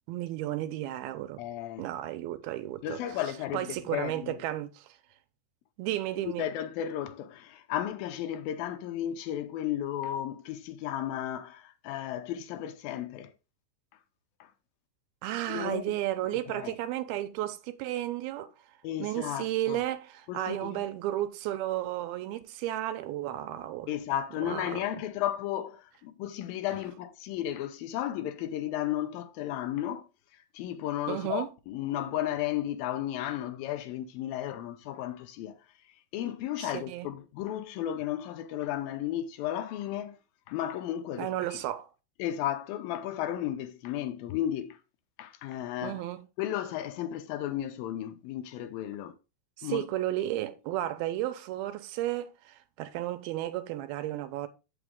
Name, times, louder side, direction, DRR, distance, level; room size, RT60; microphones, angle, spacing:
voice 1, 0.1-1.4 1.8-3.2 3.5-4.9 5.8-6.5 15.2-18.5 19.0-23.9 24.4-25.0 31.1-31.5 36.6-37.1 41.2-41.9 45.8-46.2 49.6-54.5, right 14 dB, 90° right, 2.6 m, -33 dB
voice 2, 1.4-1.9 2.8-4.4 6.4-13.3 14.4-14.5 15.5-15.9 16.5-16.8 18.8-19.8 20.3-20.8 23.9-30.1 30.3-35.6 36.1-40.2 40.5-41.3 42.2-44.8 45.2-46.0 46.4-49.1 49.6-49.9, left 11 dB, 80° left, 2.3 m, -34 dB
8.2 x 5.9 x 3.6 m
omnidirectional pair, 4.4 m